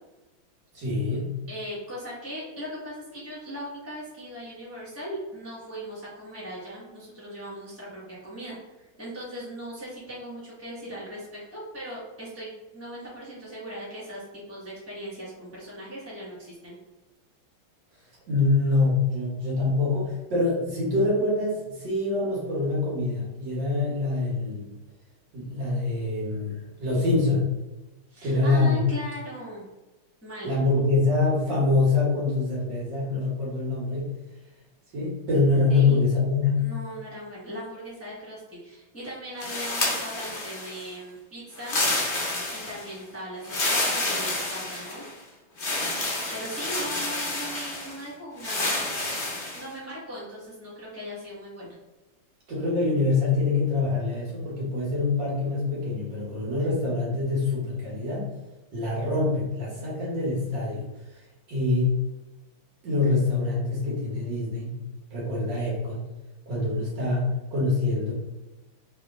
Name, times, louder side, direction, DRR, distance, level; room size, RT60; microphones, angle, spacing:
voice 1, 0.7-1.3 18.3-24.8 25.3-27.4 28.2-28.8 30.4-34.0 34.9-36.7 52.5-58.3 58.7-60.9 61.1-61.2 61.5-61.9 62.8-64.7 65.1-66.0 66.5-68.1, left 3 dB, 60° right, -5 dB, 1.8 m, -25 dB
voice 2, 1.5-11.2 11.5-16.8 28.1-29.6 30.2-30.6 35.7-36.0 36.6-41.8 42.5-45.0 46.3-48.8 49.5-51.7, equal, 10° left, -8 dB, 1.0 m, -39 dB
sound 1, 39.4-40.9 41.6-42.9 43.4-45.1 45.6-48.0 48.4-49.7, left 2 dB, 60° left, 0.5 m, -29 dB
3.5 x 2.9 x 3.5 m, 1.1 s
omnidirectional pair, 2.3 m